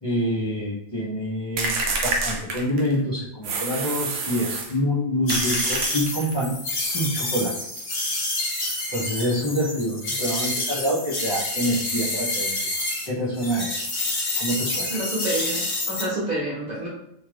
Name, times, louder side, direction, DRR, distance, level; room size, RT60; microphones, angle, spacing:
voice 1, 0.0-6.6 6.9-7.6 8.9-12.7 13.0-13.8 14.3-15.0, equal, 30° left, -9 dB, 0.4 m, -26 dB
sound 1, 1.6-3.0 3.4-4.8 5.3-6.4, right 3 dB, 65° right, 0.8 m, -27 dB
sound 2, 5.3-13.1 13.4-16.0, left 2 dB, 60° left, 1.1 m, -28 dB
voice 2, 14.9-16.9, right 1 dB, 35° right, -7 dB, 1.1 m, -28 dB
2.7 x 2.4 x 3.2 m, 0.77 s
omnidirectional pair, 1.4 m